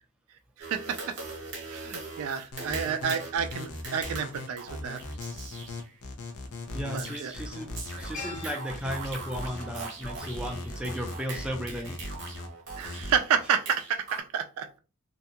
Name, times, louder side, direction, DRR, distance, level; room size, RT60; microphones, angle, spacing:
sound 1, 0.6-6.0 7.0-14.2, right 4 dB, 55° right, 0.9 m, -42 dB
voice 1, 0.6-1.2 1.7-5.0 6.9-7.3 12.8-14.7, right 7 dB, 75° right, 9 dB, 0.3 m, -30 dB
sound 2, 2.5-13.2, left 2 dB, 75° left, 0.6 m, -39 dB
sound 3, 6.3-6.6 6.9-11.2 11.4-11.6, left 4 dB, 35° left, 0.6 m, -46 dB
voice 2, 6.7-7.7 8.0-12.0, equal, 5° right, 1 dB, 0.4 m, -35 dB
2.5 x 2.2 x 2.8 m, 0.34 s
head